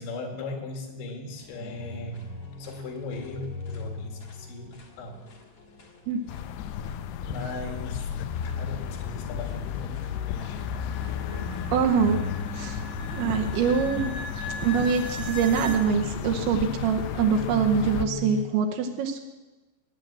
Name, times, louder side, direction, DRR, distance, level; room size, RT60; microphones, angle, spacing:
voice 1, 0.0-5.2 7.2-8.1 8.6-10.6, left 2 dB, 70° left, 3 dB, 4.3 m, -38 dB
sound 1, 1.3-18.4, left 2 dB, 50° left, 2.0 m, -41 dB
sound 2, 6.3-18.1, left 9 dB, 90° left, 2.3 m, -34 dB
sound 3, 9.2-15.8, left 1 dB, 60° right, 1.0 m, -41 dB
voice 2, 11.7-12.2 12.5-12.8 13.1-14.1 14.6-19.2, right 6 dB, 75° right, 2 dB, 3.1 m, -24 dB
19.5 x 9.2 x 7.5 m, 1.2 s
omnidirectional pair, 5.5 m